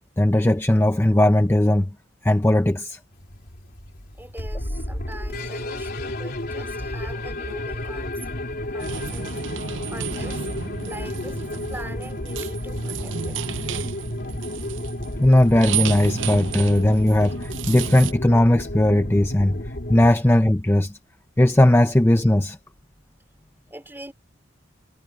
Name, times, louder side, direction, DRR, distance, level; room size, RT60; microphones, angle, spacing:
voice 1, 0.2-1.9 2.2-3.0 15.2-19.6 19.9-20.9 21.4-22.6, left 1 dB, 10° left, 0.6 m, -18 dB
sound 1, 3.1-20.1, left 1 dB, 50° left, 3.8 m, -32 dB
voice 2, 4.2-8.2 8.7-9.3 9.9-10.4 10.9-13.4 20.1-20.2 23.7-24.1, right 1 dB, 10° right, 3.8 m, -41 dB
sound 2, 8.8-18.1, right 8 dB, 70° right, 0.5 m, -33 dB
head